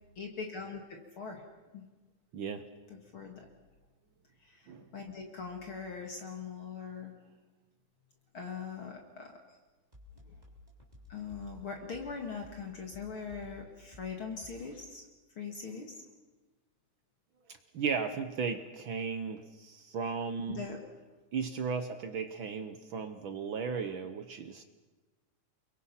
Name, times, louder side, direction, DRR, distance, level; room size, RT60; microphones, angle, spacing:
voice 1, 0.2-1.4 1.7-1.9 2.9-3.4 4.4-4.7 4.9-7.1 8.3-9.3 10.2-10.4 11.1-15.0 15.4-16.0 20.5-20.8, left 5 dB, 45° left, 2 dB, 2.6 m, -41 dB
voice 2, 2.3-2.6 4.7-4.9 17.5-20.6 21.3-24.6, right 5 dB, 65° right, 10 dB, 1.2 m, -36 dB
sound 1, 9.9-14.8, left 2 dB, 15° right, 3.8 m, -53 dB
28.5 x 23.0 x 5.8 m, 1.2 s
omnidirectional pair, 3.5 m